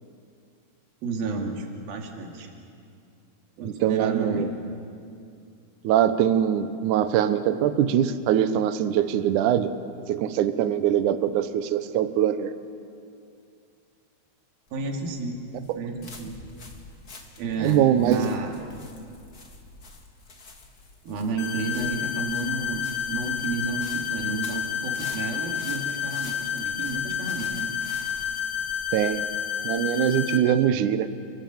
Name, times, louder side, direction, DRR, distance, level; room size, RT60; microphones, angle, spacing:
voice 1, 1.0-2.5 3.6-4.5 14.7-15.5 15.7-16.4 17.4-18.5 21.0-27.7, right 3 dB, 60° right, 1 dB, 4.1 m, -31 dB
voice 2, 3.6-4.5 5.8-9.7 10.1-12.6 17.6-18.3 28.9-29.2 29.6-31.1, right 10 dB, 85° right, 11 dB, 1.7 m, -22 dB
sound 1, 14.7-30.2, left 3 dB, 40° left, 1.4 m, -47 dB
sound 2, 21.4-30.4, left 9 dB, 75° left, 4.0 m, -30 dB
29.5 x 19.0 x 7.8 m, 2.4 s
omnidirectional pair, 5.0 m